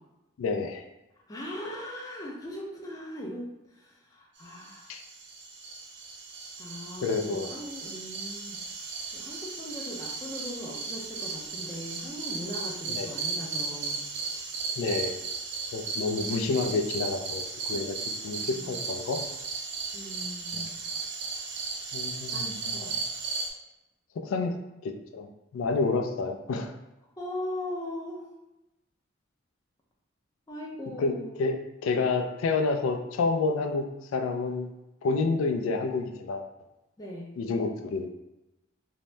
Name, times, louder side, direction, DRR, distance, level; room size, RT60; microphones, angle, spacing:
voice 1, 0.4-0.9 4.9-5.0 7.0-7.5 12.9-13.1 14.8-15.2 15.7-18.0 18.2-19.2 20.5-20.6 21.9-23.0 24.2-24.5 24.8-26.7 31.0-31.6 31.8-34.7 35.0-36.4 37.4-38.1, left 3 dB, 85° left, 5 dB, 0.3 m, -29 dB
voice 2, 1.3-4.9 6.6-8.6 9.1-14.0 18.4-18.9 19.9-20.8 22.3-23.1 27.2-28.3 30.5-31.4 37.0-37.3, left 1 dB, 20° left, -3 dB, 0.4 m, -39 dB
sound 1, 4.6-23.5, right 4 dB, 60° right, 0.4 m, -35 dB
2.7 x 2.0 x 3.2 m, 0.94 s
head